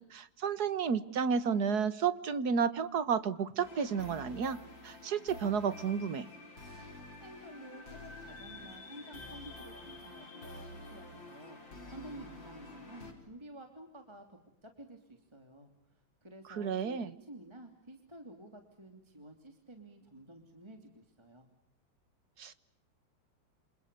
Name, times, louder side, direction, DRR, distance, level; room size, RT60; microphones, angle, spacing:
voice 1, 0.0-4.6 4.8-6.3 16.5-17.1 22.4-22.5, right 6 dB, 55° right, 14 dB, 1.8 m, -32 dB
sound 1, 3.6-13.1, left 2 dB, 70° left, 5.5 m, -49 dB
voice 2, 7.2-11.6 11.9-21.5, right 1 dB, 15° right, 5 dB, 2.9 m, -51 dB
28.5 x 27.5 x 6.8 m, 0.78 s
omnidirectional pair, 2.1 m